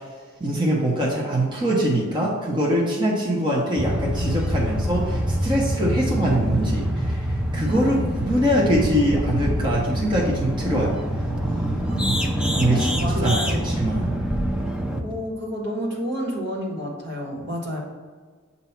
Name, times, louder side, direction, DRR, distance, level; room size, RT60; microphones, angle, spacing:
voice 1, 0.4-7.2 7.5-11.0 12.0-12.2 12.5-14.1, equal, 25° right, -5 dB, 1.1 m, -23 dB
sound 1, 3.8-15.0, equal, 5° right, 0.6 m, -25 dB
voice 2, 7.5-8.2 11.9-13.8 15.0-17.8, equal, 60° right, -3 dB, 1.7 m, -31 dB
8.0 x 2.8 x 5.8 m, 1.5 s
head